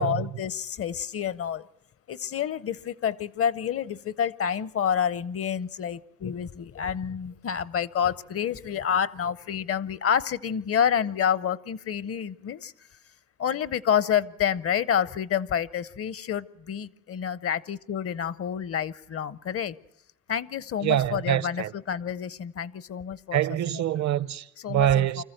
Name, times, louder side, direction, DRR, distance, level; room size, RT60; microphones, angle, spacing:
voice 1, 0.0-1.7 2.1-12.7 13.4-19.7 20.3-23.4 24.6-25.2, left 8 dB, 50° left, 0.7 m, -28 dB
voice 2, 20.8-21.7 23.3-25.2, right 11 dB, 65° right, 0.8 m, -25 dB
25.5 x 14.5 x 7.9 m
cardioid pair, 90°, 30 cm